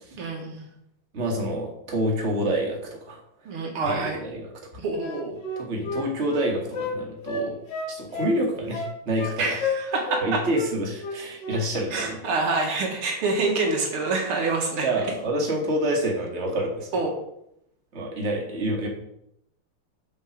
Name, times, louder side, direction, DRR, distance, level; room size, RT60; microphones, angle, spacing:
voice 1, 0.1-0.7 3.5-4.2 4.8-5.3 9.4-10.4 11.9-14.9 16.9-17.1, right 3 dB, 80° right, 1 dB, 2.6 m, -26 dB
voice 2, 1.1-3.2 3.8-4.5 5.6-7.6 7.9-9.6 10.2-12.2 14.8-17.1 17.9-18.9, right 1 dB, 30° right, 0 dB, 2.1 m, -27 dB
Wind instrument woodwind instrument, 5.0-6.9 7.3-8.4 8.7-9.3 9.6-10.3 10.5-10.7 11.0-11.6 11.9-12.1, left 3 dB, 60° left, 2.0 m, -31 dB
7.2 x 6.5 x 6.2 m, 0.77 s
omnidirectional pair, 2.3 m